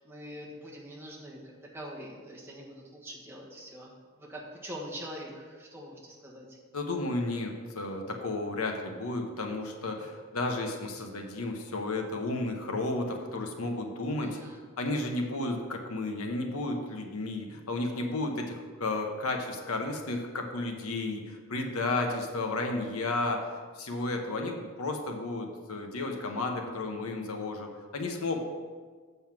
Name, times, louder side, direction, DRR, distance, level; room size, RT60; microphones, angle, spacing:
voice 1, 0.0-1.4 1.7-3.9 4.2-6.5 14.2-14.6 26.1-26.8, equal, 10° right, -4 dB, 1.5 m, -44 dB
voice 2, 6.7-14.4 14.8-23.5 23.8-28.4, left 2 dB, 85° left, 3 dB, 1.0 m, -33 dB
7.4 x 5.6 x 5.9 m, 1.5 s
head